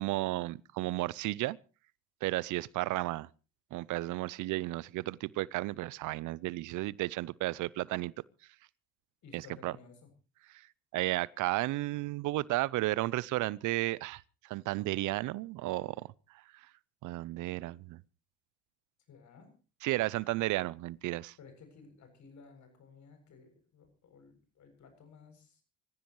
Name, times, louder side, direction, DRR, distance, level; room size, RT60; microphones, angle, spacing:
voice 1, 0.0-1.6 2.2-3.3 3.7-8.1 9.3-9.7 10.9-16.1 17.0-18.0 19.8-21.3, right 18 dB, 70° right, 0.7 m, -33 dB
voice 2, 9.2-10.1 19.1-19.5 21.4-25.6, left 5 dB, 60° left, 7.6 m, -56 dB
25.5 x 15.5 x 3.1 m
hypercardioid pair, 60°, 32 cm